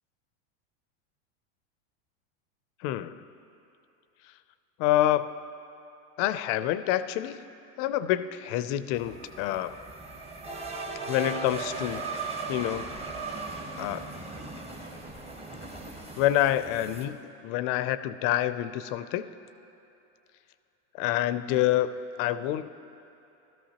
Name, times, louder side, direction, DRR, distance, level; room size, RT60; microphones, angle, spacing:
voice 1, 2.8-3.2 4.8-5.3 6.2-7.4 7.8-9.8 11.0-12.9 13.8-14.1 16.2-19.3 21.0-21.9 22.2-22.7, left 13 dB, 45° left, 13 dB, 0.4 m, -27 dB
sound 1, 8.9-17.1, right 3 dB, 15° right, 0.9 m, -38 dB
19.5 x 13.5 x 2.9 m, 2.9 s
supercardioid pair, 145°, 41 cm